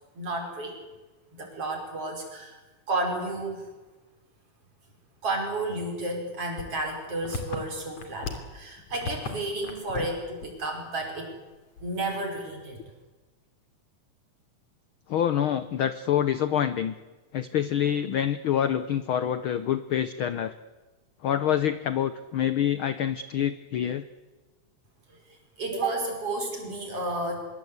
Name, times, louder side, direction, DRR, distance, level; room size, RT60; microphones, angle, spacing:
voice 1, 0.2-0.7 1.4-2.6 2.9-3.6 5.2-11.3 11.8-12.8 25.1-25.2 25.6-27.5, right 2 dB, 45° right, 2 dB, 6.3 m, -32 dB
sound 1, 6.6-8.6 8.9-9.4 9.6-10.1 10.4-10.6 11.0-11.1 11.8-12.2, left 4 dB, 55° left, 3.8 m, -36 dB
voice 2, 15.1-16.9 17.3-20.5 21.2-24.1, left 10 dB, 75° left, 12 dB, 1.2 m, -26 dB
24.5 x 23.0 x 8.2 m, 1.2 s
omnidirectional pair, 3.5 m